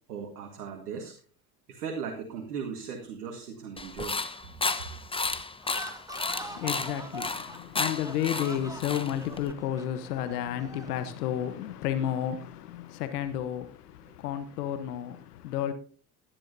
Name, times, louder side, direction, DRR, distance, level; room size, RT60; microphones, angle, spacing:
voice 1, 0.1-1.1 1.7-4.2, right 6 dB, 80° right, 1.8 m, -37 dB
sound 1, 3.8-9.5, left 3 dB, 10° left, 1.0 m, -33 dB
sound 2, 5.6-11.0, right 1 dB, 5° right, 1.7 m, -43 dB
voice 2, 6.3-15.7, left 10 dB, 80° left, 1.1 m, -32 dB
17.0 x 11.5 x 2.7 m
hypercardioid pair, 70°, 46 cm